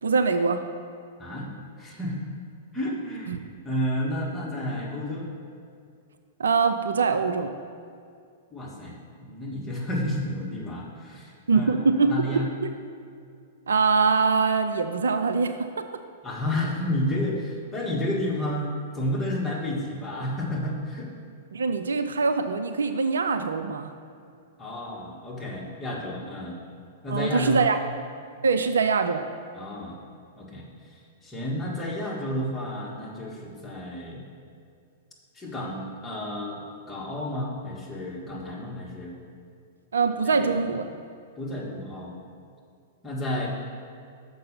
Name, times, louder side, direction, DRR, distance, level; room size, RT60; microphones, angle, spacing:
voice 1, 0.0-0.6 3.3-3.4 6.4-7.5 11.5-12.7 13.7-15.9 21.5-23.9 27.1-27.8 28.4-29.3 39.9-40.8, right 4 dB, 75° right, 8 dB, 0.4 m, -23 dB
voice 2, 1.8-2.3 2.7-3.4 3.6-5.3 8.5-8.9 9.2-12.5 16.2-21.1 24.6-26.6 27.0-27.8 29.5-30.0 30.4-34.2 35.3-39.2 40.2-40.7 41.4-42.1 43.0-43.5, left 1 dB, 10° left, -4 dB, 1.8 m, -31 dB
6.6 x 5.4 x 6.8 m, 2.3 s
figure-of-eight pair, 105°, 0 cm